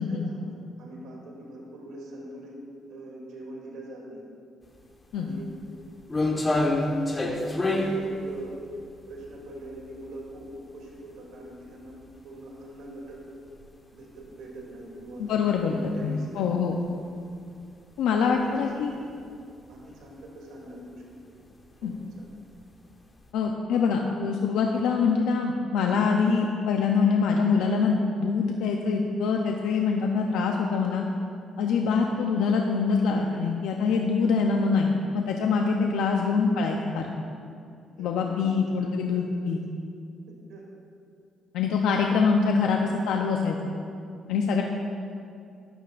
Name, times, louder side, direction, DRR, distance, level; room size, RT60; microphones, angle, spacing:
voice 1, 0.0-2.6 2.9-4.2 5.1-5.5 6.2-8.6 9.1-11.9 12.2-13.2 13.9-16.8 18.1-19.2 19.7-20.9 21.8-21.9 31.8-32.1 38.0-38.5 38.8-39.2 40.5-40.6 42.4-42.5, right 1 dB, 85° right, -3 dB, 2.7 m, -43 dB
sound 1, 4.8-4.9 5.3-10.4 10.8-10.9 11.6-11.7 12.0-12.1 13.1-13.2 13.5-13.7 14.2-14.3 14.6-14.7 16.9-17.0 18.2-18.6 18.9-19.4 19.7-19.9 20.2-20.3 21.4-21.6 22.2-22.9 23.2-23.3, left 2 dB, 25° left, 1.3 m, -27 dB
voice 2, 15.2-15.7 16.0-16.7 18.0-18.9 21.8-22.0 23.3-31.0 31.6-37.2 38.0-39.6 41.5-43.6 44.3-44.6, left 5 dB, 90° left, 1 dB, 0.6 m, -24 dB
13.0 x 11.5 x 2.5 m, 2.4 s
cardioid pair, 90°, 0 cm